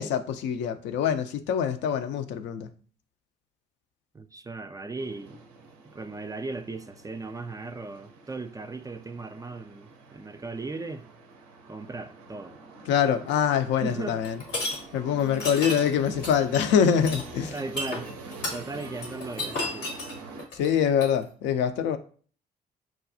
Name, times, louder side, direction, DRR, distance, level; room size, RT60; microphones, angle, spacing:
voice 1, 0.0-2.7 12.9-14.4 14.9-17.5 20.5-22.0, left 8 dB, 60° left, 0.4 m, -24 dB
voice 2, 4.1-5.4 5.9-11.1 11.7-12.5 13.8-14.2 17.5-18.2 18.5-19.9, right 3 dB, 15° right, 0.3 m, -37 dB
sound 1, 5.0-20.5, right 3 dB, 80° right, 0.4 m, -45 dB
sound 2, 14.2-14.8 15.3-21.2, left 2 dB, 80° left, 1.0 m, -32 dB
5.8 x 2.3 x 2.5 m
figure-of-eight pair, 40°, 21 cm